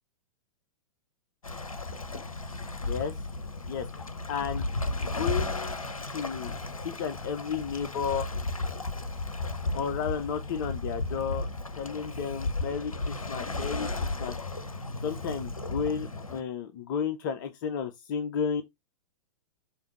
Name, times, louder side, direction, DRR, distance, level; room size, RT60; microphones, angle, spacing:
Waves surf, 1.4-16.4, left 2 dB, 85° left, 0.6 m, -34 dB
voice 1, 2.8-3.2 3.7-4.0 4.3-4.7 5.0-5.8 6.1-6.5 6.8-8.3 9.7-11.5 11.8-14.3 15.0-18.6, left 7 dB, 35° left, 0.4 m, -33 dB
4.9 x 2.5 x 3.0 m
figure-of-eight pair, 105°, 17 cm